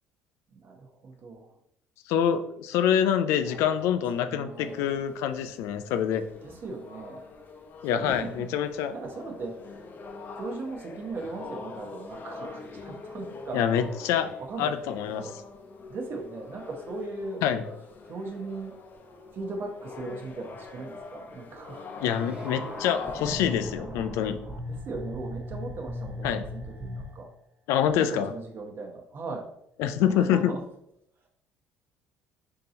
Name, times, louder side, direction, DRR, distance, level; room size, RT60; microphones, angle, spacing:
voice 1, 0.5-1.6 3.4-5.0 6.4-7.3 7.8-9.8 10.3-13.6 14.4-14.8 15.1-15.3 15.9-17.4 18.0-18.7 19.3-21.9 24.7-27.3 27.9-29.5 30.0-30.6 31.2-31.3, right 3 dB, 45° right, 2 dB, 0.9 m, -38 dB
voice 2, 2.1-6.2 7.8-9.0 13.5-14.3 14.6-15.3 17.4-17.6 22.0-24.4 26.2-26.4 27.7-28.3 29.8-30.4, left 9 dB, 75° left, 9 dB, 0.4 m, -26 dB
sound 1, 4.6-23.5, left 4 dB, 40° left, 0.6 m, -44 dB
sound 2, 22.0-27.3 27.9-28.0, left 1 dB, 20° right, 0.9 m, -38 dB
3.8 x 2.8 x 3.8 m, 0.75 s
supercardioid pair, 90°, 5 cm